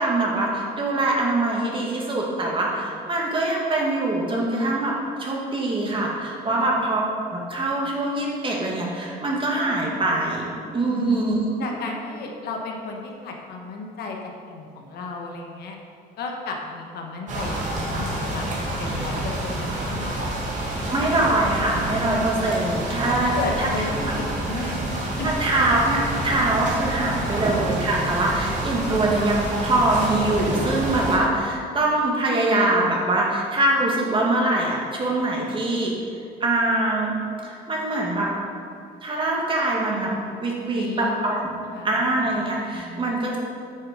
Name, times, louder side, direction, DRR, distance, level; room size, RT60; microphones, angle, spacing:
voice 1, 0.0-7.0 7.3-11.4 20.9-23.9 25.2-36.0 36.4-37.1 37.4-38.3 39.0-40.2 40.4-41.4 41.8-43.4, right 2 dB, 30° right, -2 dB, 2.1 m, -23 dB
voice 2, 10.9-15.8 16.2-18.5 18.8-20.3 23.0-24.8 25.2-25.3 27.3-27.5 40.7-41.1 41.5-41.9 42.7-43.2, left 3 dB, 70° left, 1 dB, 1.4 m, -34 dB
sound 1, 17.3-31.2, right 1 dB, 45° right, 2.5 m, -28 dB
9.2 x 6.7 x 5.2 m, 2.3 s
cardioid pair, 110°, 17 cm